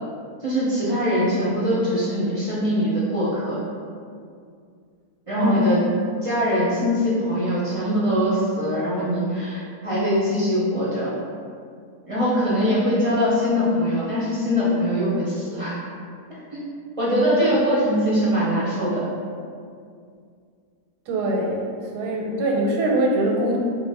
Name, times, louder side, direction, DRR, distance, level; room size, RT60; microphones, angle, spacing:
voice 1, 0.4-3.6 5.3-5.8 6.2-11.1 12.0-15.7 16.5-16.6 17.0-19.0, equal, 40° right, -9 dB, 0.4 m, -22 dB
voice 2, 5.4-5.7 21.1-21.7 21.9-23.6, right 1 dB, 80° right, -1 dB, 1.2 m, -22 dB
3.5 x 3.1 x 3.3 m, 2.2 s
omnidirectional pair, 1.7 m